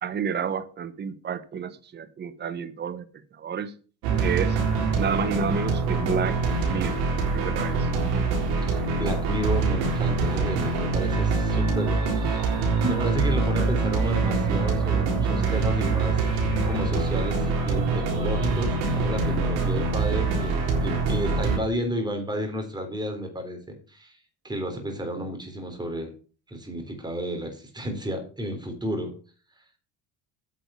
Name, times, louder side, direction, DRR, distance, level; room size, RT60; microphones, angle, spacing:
voice 1, 0.0-3.1 3.3-3.7 4.2-4.6 4.9-7.0 7.3-7.9, right 7 dB, 30° right, 1.1 m, -30 dB
sound 1, 4.0-21.6, right 4 dB, 85° right, 3.9 m, -24 dB
voice 2, 8.6-20.5 20.8-24.2 24.4-26.1 26.5-29.1, equal, 10° right, 3.7 m, -32 dB
9.4 x 6.3 x 7.0 m
cardioid pair, 120°, 35 cm